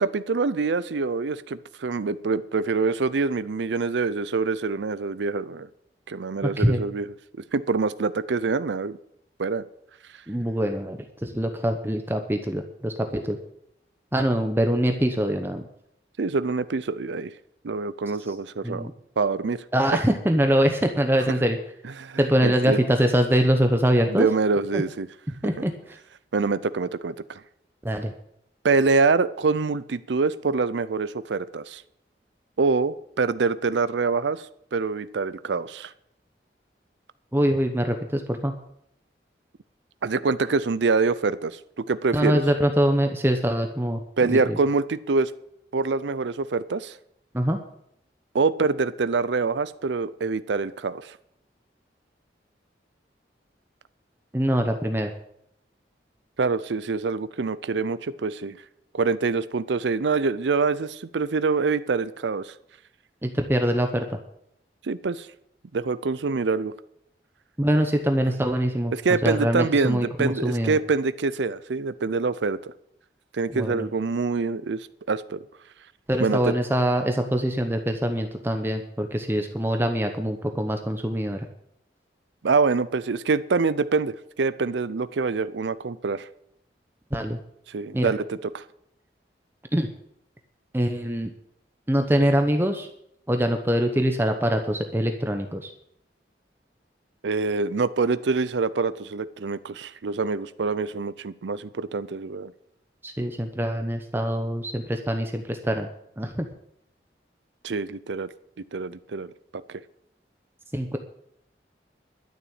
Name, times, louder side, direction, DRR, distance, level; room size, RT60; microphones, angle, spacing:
voice 1, 0.0-5.7 6.1-7.1 7.5-9.0 9.4-9.6 16.2-17.3 17.6-18.9 19.2-19.6 22.0-22.8 24.1-25.1 26.3-27.4 28.6-31.8 32.6-34.5 34.7-35.9 40.0-41.6 41.9-42.4 44.2-45.3 45.7-47.0 48.3-51.2 56.4-58.6 58.9-62.5 64.8-65.3 65.7-66.7 68.9-72.7 73.3-75.4 76.2-76.5 82.4-86.3 87.7-88.6 97.2-102.5 107.6-108.3 108.7-109.3 109.7-109.8, right 4 dB, 80° right, 15 dB, 0.5 m, -25 dB
voice 2, 6.4-6.9 10.3-13.4 14.1-15.6 18.6-18.9 19.7-21.6 22.2-24.3 24.7-24.8 25.4-26.0 27.8-28.1 37.3-38.5 42.1-44.0 44.3-44.6 47.3-47.6 54.3-55.1 63.2-64.2 67.6-68.9 69.2-70.8 73.5-73.9 76.1-81.5 87.1-87.4 87.9-88.1 89.7-89.9 90.7-91.3 91.9-92.9 93.3-95.7 103.0-105.9 106.2-106.5 110.7-111.0, equal, 10° right, 5 dB, 0.9 m, -24 dB
12.0 x 7.0 x 8.7 m, 0.74 s
head